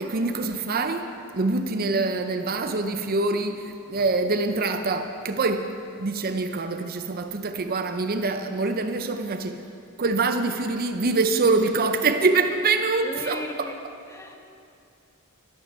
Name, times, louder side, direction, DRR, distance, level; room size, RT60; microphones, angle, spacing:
voice 1, 0.0-5.7 6.0-9.6 10.0-13.7, right 3 dB, 45° right, 7 dB, 0.6 m, -25 dB
voice 2, 13.0-13.8 14.1-14.4, left 1 dB, 15° left, 3 dB, 1.0 m, -36 dB
12.5 x 12.0 x 5.6 m, 2.5 s
head